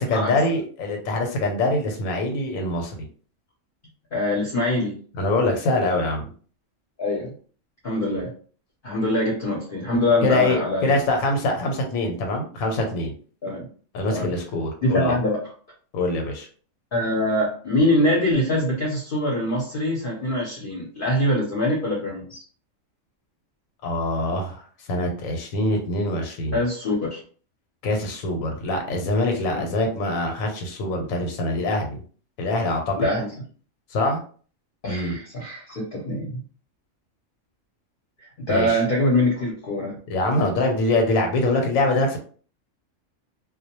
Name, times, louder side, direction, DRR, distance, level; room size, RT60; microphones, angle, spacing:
voice 1, 0.0-2.9 5.2-6.2 10.2-13.1 13.9-15.1 15.9-16.5 23.8-24.6 24.9-26.6 27.8-32.0 32.4-33.1 33.9-34.2 34.8-35.2 38.5-38.7 40.1-42.2, left 2 dB, 85° left, 3 dB, 1.0 m, -24 dB
voice 2, 4.1-4.9 7.0-7.3 7.8-8.3 8.8-11.0 13.4-13.7 14.1-14.3 14.8-15.5 16.9-22.4 26.5-27.2 29.5-29.7 32.9-33.3 34.8-36.4 38.2-40.0, left 1 dB, 50° left, -4 dB, 0.7 m, -24 dB
2.2 x 2.1 x 2.8 m, 0.43 s
omnidirectional pair, 1.4 m